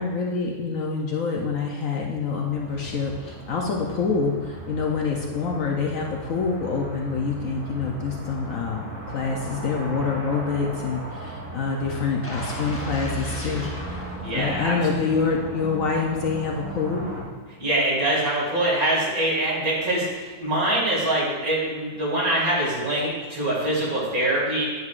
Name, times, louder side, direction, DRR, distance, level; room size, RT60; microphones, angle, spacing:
voice 1, 0.0-14.1 14.3-17.1, left 5 dB, 65° left, 0 dB, 0.9 m, -26 dB
sound 1, 2.5-17.2, right 1 dB, 80° right, 2.3 m, -37 dB
sound 2, 12.2-15.2 15.6-15.7, right 1 dB, 15° left, 0.4 m, -36 dB
voice 2, 14.2-14.8 17.6-24.6, right 1 dB, 55° right, -6 dB, 2.6 m, -24 dB
9.5 x 6.2 x 2.4 m, 1.5 s
omnidirectional pair, 1.8 m